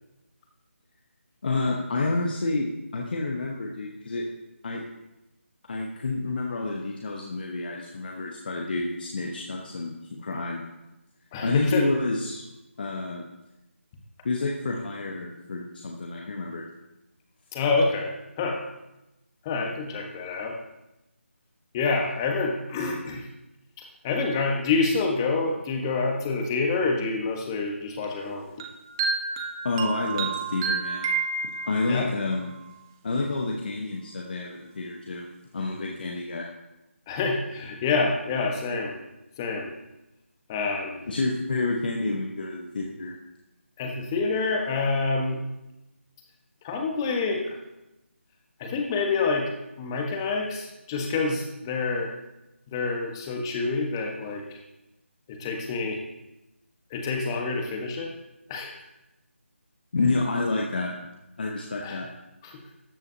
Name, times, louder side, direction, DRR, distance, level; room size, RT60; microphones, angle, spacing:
voice 1, 1.4-2.7 2.9-4.2 4.6-4.8 5.7-10.7 11.4-12.4 12.8-13.2 14.2-16.6 29.6-31.1 31.6-32.5 33.0-35.3 35.5-36.5 41.1-43.2 59.9-60.9 61.4-62.1, left 3 dB, 45° left, 0 dB, 1.2 m, -29 dB
voice 2, 11.3-11.8 17.5-18.6 19.4-20.6 21.7-23.3 23.8-28.5 31.8-32.1 37.1-38.9 39.4-39.7 40.5-41.0 43.8-45.4 46.6-47.6 48.6-49.5 49.8-52.1 52.7-54.6 55.3-56.0 56.9-58.1 58.5-58.7 61.8-62.0 62.4-62.6, left 4 dB, 20° left, 2 dB, 1.2 m, -27 dB
sound 1, 28.6-32.1, right 5 dB, 15° right, 0.6 m, -29 dB
13.5 x 7.9 x 2.8 m, 0.95 s
figure-of-eight pair, 160°, 7 cm